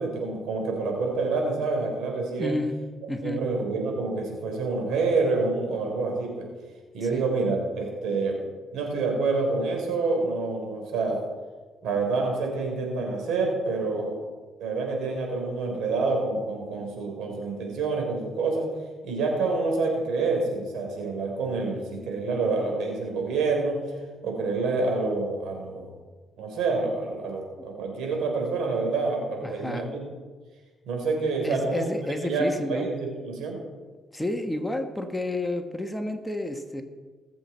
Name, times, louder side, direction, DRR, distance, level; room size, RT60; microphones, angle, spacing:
voice 1, 0.0-2.6 3.2-6.5 6.9-8.4 8.7-11.2 11.8-14.2 14.6-18.7 19.0-23.8 24.2-25.9 26.4-30.0 30.9-31.9 32.2-33.6, right 3 dB, 85° right, 1 dB, 3.8 m, -27 dB
voice 2, 2.4-2.8 3.1-3.4 7.1-7.2 29.4-29.9 31.4-32.9 34.1-36.8, left 1 dB, 5° left, 5 dB, 1.3 m, -30 dB
20.0 x 7.6 x 4.3 m, 1.4 s
cardioid pair, 90°, 0 cm